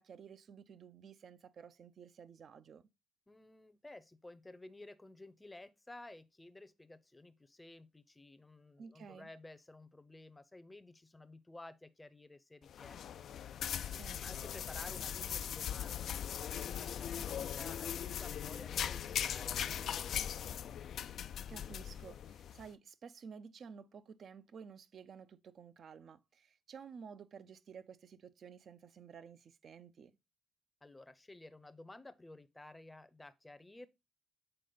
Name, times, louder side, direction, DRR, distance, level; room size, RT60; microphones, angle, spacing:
voice 1, 0.0-2.8 8.8-9.3 13.9-14.4 21.5-30.1, right 6 dB, 55° right, 0.5 m, -53 dB
voice 2, 3.3-13.3 14.2-20.8 30.8-33.9, left 2 dB, 15° left, 0.6 m, -54 dB
sound 1, 12.7-22.7, left 9 dB, 65° left, 0.3 m, -40 dB
6.7 x 4.2 x 3.9 m
cardioid pair, 90°, 0 cm